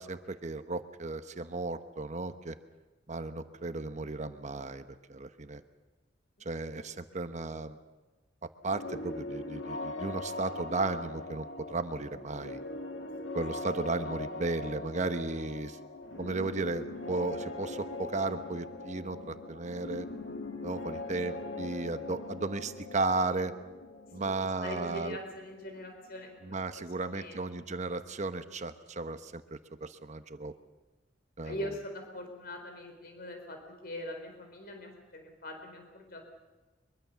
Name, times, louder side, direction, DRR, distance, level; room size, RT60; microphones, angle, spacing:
voice 1, 0.0-2.6 3.1-4.8 5.1-5.6 6.4-7.8 8.6-12.6 13.3-15.8 16.2-20.1 20.6-23.5 24.1-25.2 26.4-30.5 31.4-31.7, right 3 dB, 40° right, 10 dB, 1.0 m, -35 dB
sound 1, 8.6-26.3, left 2 dB, 85° left, 2.1 m, -41 dB
voice 2, 24.6-26.6 27.0-27.4 31.4-36.2, left 1 dB, 55° left, 4 dB, 4.3 m, -42 dB
23.5 x 23.0 x 7.0 m, 1.2 s
head